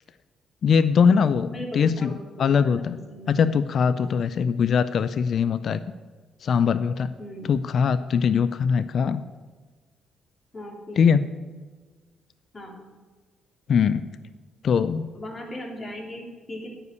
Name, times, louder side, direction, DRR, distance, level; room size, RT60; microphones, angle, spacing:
voice 1, 0.6-2.1 2.4-3.0 3.3-5.8 6.4-7.1 7.4-9.2 11.0-11.2 13.7-14.1 14.6-15.1, left 6 dB, 55° left, 13 dB, 0.4 m, -21 dB
voice 2, 1.5-2.8 3.1-3.4 3.9-4.0 7.2-7.5 10.5-11.3 12.5-12.8 15.2-16.7, left 1 dB, 30° left, -1 dB, 3.0 m, -38 dB
9.3 x 5.6 x 8.3 m, 1.4 s
cardioid pair, 90°, 0 cm